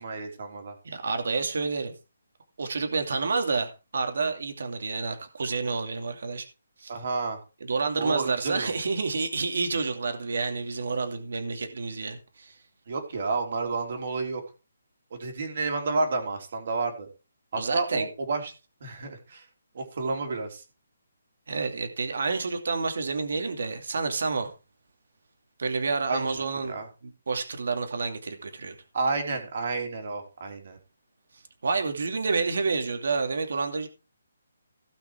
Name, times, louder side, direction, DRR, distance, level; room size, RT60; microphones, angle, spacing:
voice 1, 0.0-0.7 6.9-7.4 8.0-8.8 12.9-14.4 15.1-17.1 17.5-18.5 18.8-19.5 19.7-20.6 26.1-26.9 28.9-30.8, right 3 dB, 40° right, 3.3 m, -30 dB
voice 2, 0.8-1.9 2.6-6.5 6.8-6.9 7.7-12.5 17.6-18.1 21.5-24.5 25.6-26.7 27.0-28.8 31.6-33.9, right 4 dB, 55° right, 2.5 m, -29 dB
17.0 x 5.9 x 4.7 m
hypercardioid pair, 175°, 0 cm